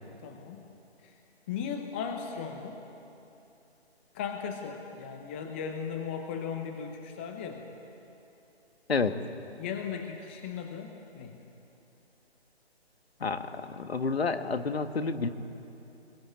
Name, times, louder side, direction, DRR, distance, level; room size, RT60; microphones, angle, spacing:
voice 1, 0.2-0.6 1.0-1.2 1.5-2.8 4.1-7.8 9.6-11.4, left 6 dB, 10° left, 4 dB, 0.7 m, -37 dB
voice 2, 13.2-15.3, left 4 dB, 70° left, 8 dB, 1.7 m, -29 dB
25.0 x 21.5 x 8.7 m, 2.9 s
figure-of-eight pair, 155°, 33 cm